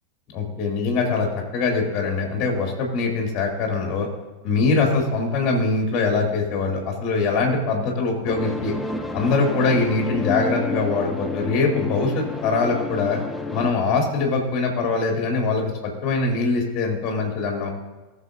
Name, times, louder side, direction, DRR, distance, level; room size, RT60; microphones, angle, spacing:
voice 1, 0.3-4.1 4.4-8.7 9.1-13.2 13.5-17.7, left 4 dB, 35° left, 0 dB, 2.3 m, -23 dB
sound 1, 8.3-13.7, left 2 dB, 5° left, 0.8 m, -30 dB
18.5 x 6.4 x 2.5 m, 1.2 s
figure-of-eight pair, 85°, 0 cm